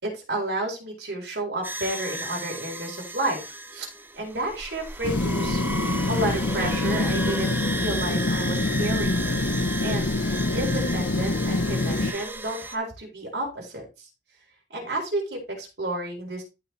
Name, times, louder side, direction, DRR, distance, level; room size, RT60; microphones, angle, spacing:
voice 1, 0.0-3.9 4.1-5.6 6.1-9.2 9.8-10.1 10.5-14.1 14.7-16.4, right 1 dB, 65° right, -1 dB, 4.5 m, -31 dB
sound 1, 1.6-12.8, right 2 dB, 10° right, 0.7 m, -34 dB
sound 2, 5.0-12.1, left 2 dB, 75° left, 0.9 m, -25 dB
13.5 x 4.9 x 3.3 m, 0.28 s
head